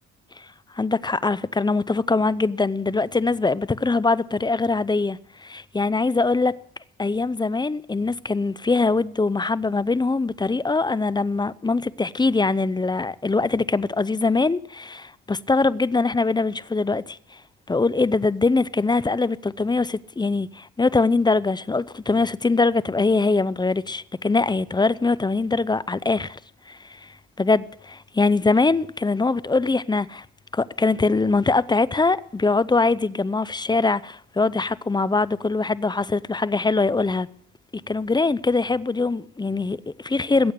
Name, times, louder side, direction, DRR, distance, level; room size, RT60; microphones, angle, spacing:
voice 1, 0.8-6.6 7.0-17.2 17.7-26.4 26.7-27.1 27.4-30.2 30.5-37.3 37.9-40.5, left 3 dB, 15° left, 0.5 m, -22 dB
21.0 x 8.5 x 6.6 m
cardioid pair, 90°, 30 cm